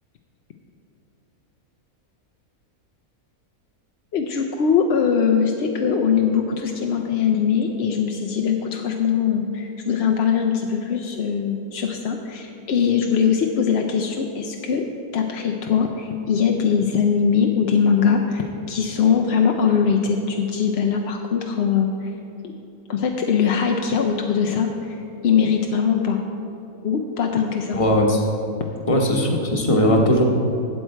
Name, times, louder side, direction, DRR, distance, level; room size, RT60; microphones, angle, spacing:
voice 1, 4.1-14.8 15.1-22.1 22.9-26.2 26.8-27.8, left 7 dB, 60° left, 3 dB, 0.7 m, -21 dB
voice 2, 27.7-28.2 28.9-30.2, left 1 dB, 25° left, 1 dB, 1.1 m, -18 dB
12.5 x 7.7 x 4.5 m, 2.9 s
omnidirectional pair, 1.6 m